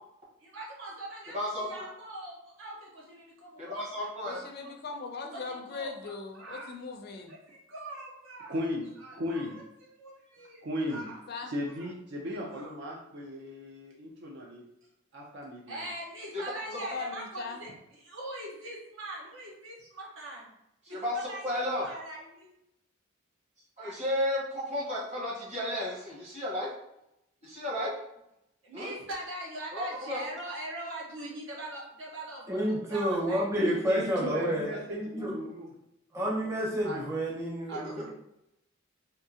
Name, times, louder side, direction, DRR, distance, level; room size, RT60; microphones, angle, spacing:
voice 1, 0.4-3.8 4.6-4.7 5.3-6.7 7.3-8.5 9.0-9.6 10.0-10.6 10.9-11.2 11.7-11.9 12.5-12.7 15.7-20.5 20.9-22.5 23.8-24.0 28.6-34.0 34.7-34.8, right 1 dB, 75° right, -3 dB, 1.1 m, -42 dB
voice 2, 1.3-1.8 3.6-4.4 16.3-16.4 20.8-21.8 23.8-26.7 27.4-27.9 28.7-28.9 29.7-30.2 37.7-38.0, left 1 dB, 35° right, -5 dB, 1.2 m, -33 dB
voice 3, 4.2-7.3 11.3-11.5 16.7-17.6, left 4 dB, 50° left, 4 dB, 0.4 m, -40 dB
voice 4, 8.5-9.5 10.6-11.1 11.5-14.6 15.1-15.9 33.5-35.7 36.8-37.0 37.7-38.1, equal, 60° right, -2 dB, 0.5 m, -36 dB
voice 5, 32.5-35.3 36.1-38.1, equal, 15° right, -4 dB, 0.7 m, -30 dB
3.6 x 2.7 x 2.8 m, 0.83 s
head